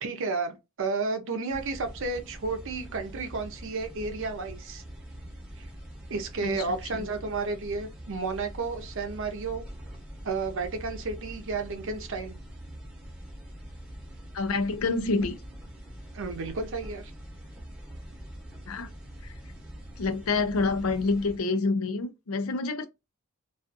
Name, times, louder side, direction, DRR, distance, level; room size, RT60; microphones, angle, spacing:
voice 1, 0.0-4.8 5.6-5.7 6.1-9.6 10.2-12.4 16.1-17.1, right 4 dB, 65° right, 0.6 m, -32 dB
sound 1, 1.5-21.4, equal, 5° right, 0.8 m, -44 dB
voice 2, 6.4-7.1 14.3-15.4 18.7-18.9 19.2-19.3 20.0-22.9, left 3 dB, 85° left, 0.5 m, -28 dB
2.5 x 2.4 x 2.4 m
head